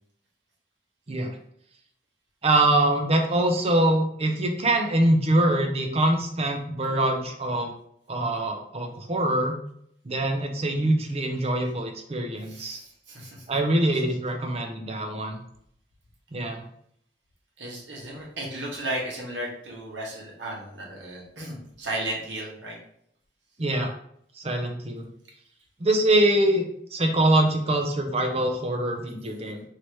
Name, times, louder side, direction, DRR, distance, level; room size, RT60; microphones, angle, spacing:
voice 1, 2.4-7.7 8.1-9.6 10.0-12.8 13.5-15.4 16.3-16.6 23.6-23.9 24.4-25.1 25.8-26.6 26.9-29.6, right 1 dB, 35° right, 3 dB, 0.6 m, -24 dB
voice 2, 12.5-13.5 17.6-22.8, right 1 dB, 85° right, -3 dB, 1.3 m, -34 dB
3.1 x 2.9 x 4.6 m, 0.69 s
head